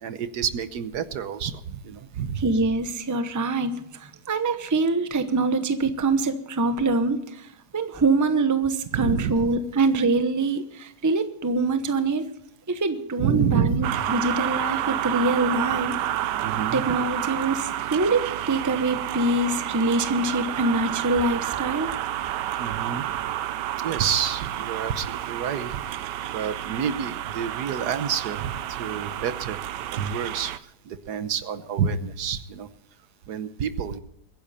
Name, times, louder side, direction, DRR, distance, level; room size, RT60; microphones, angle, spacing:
voice 1, 0.0-2.4 8.9-9.5 13.2-14.0 16.4-16.8 22.6-23.1 23.8-26.0 26.3-29.6 29.9-30.5 30.9-32.7 33.3-34.0, right 7 dB, 75° right, 12 dB, 1.4 m, -28 dB
voice 2, 2.3-12.3 12.7-16.0 16.7-21.9, right 3 dB, 15° right, 9 dB, 0.7 m, -24 dB
sound 1, 13.8-30.6, right 12 dB, 90° right, 1.3 m, -30 dB
22.5 x 10.0 x 4.3 m, 0.77 s
omnidirectional pair, 1.8 m